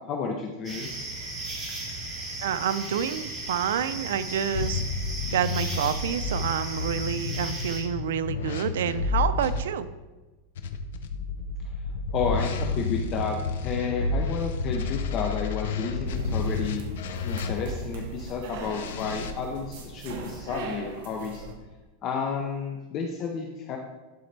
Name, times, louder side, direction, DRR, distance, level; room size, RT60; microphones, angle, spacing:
voice 1, 0.1-0.9 12.1-16.8 17.2-21.4 22.0-23.8, left 5 dB, 30° left, 2 dB, 0.6 m, -31 dB
sound 1, 0.6-7.8, right 2 dB, 20° right, 1.5 m, -36 dB
voice 2, 2.4-4.8 5.3-9.9, right 9 dB, 90° right, 13 dB, 0.5 m, -28 dB
sound 2, 4.5-9.6 10.5-17.9 18.6-19.3, left 4 dB, 75° left, 0.6 m, -30 dB
sound 3, 16.0-21.5, right 3 dB, 60° right, 1.1 m, -39 dB
11.5 x 4.0 x 3.3 m, 1.2 s
supercardioid pair, 175°, 0 cm